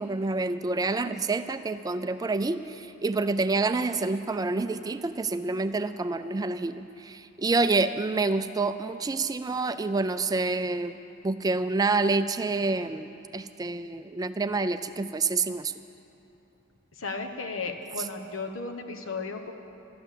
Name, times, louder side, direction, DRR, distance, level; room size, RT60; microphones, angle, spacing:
voice 1, 0.0-11.0 11.2-15.7, right 3 dB, 20° right, 11 dB, 0.3 m, -28 dB
voice 2, 17.0-19.5, left 4 dB, 85° left, 4 dB, 1.2 m, -34 dB
13.0 x 11.0 x 7.5 m, 2.9 s
head